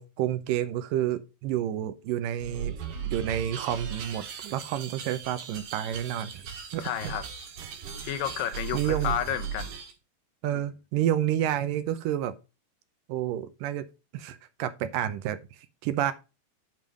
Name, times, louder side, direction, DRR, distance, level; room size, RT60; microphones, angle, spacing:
voice 1, 0.0-2.8 3.0-6.4 6.7-7.1 8.4-9.1 10.4-12.3 13.1-13.9 14.1-15.4 15.8-16.1, right 11 dB, 80° right, 2.3 m, -29 dB
sound 1, 2.4-9.9, right 7 dB, 65° right, 3.0 m, -37 dB
voice 2, 6.8-7.2 8.0-9.8 10.5-10.6, left 10 dB, 80° left, 2.6 m, -31 dB
9.2 x 5.4 x 4.9 m
omnidirectional pair, 4.0 m